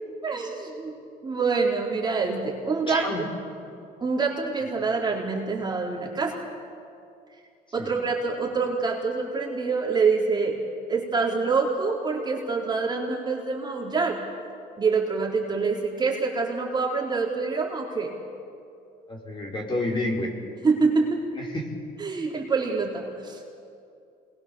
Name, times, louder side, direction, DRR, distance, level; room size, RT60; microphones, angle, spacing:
voice 1, 0.2-1.0 1.2-3.0 4.0-6.4 7.7-10.6 10.9-14.2 14.8-18.1 20.6-21.2 22.0-23.4, right 4 dB, 25° right, -2 dB, 3.9 m, -26 dB
voice 2, 2.9-3.2 7.8-7.9 19.1-20.3 21.3-21.6, left 1 dB, 30° left, -1 dB, 4.8 m, -29 dB
27.0 x 21.0 x 7.1 m, 2.5 s
cardioid pair, 110°, 17 cm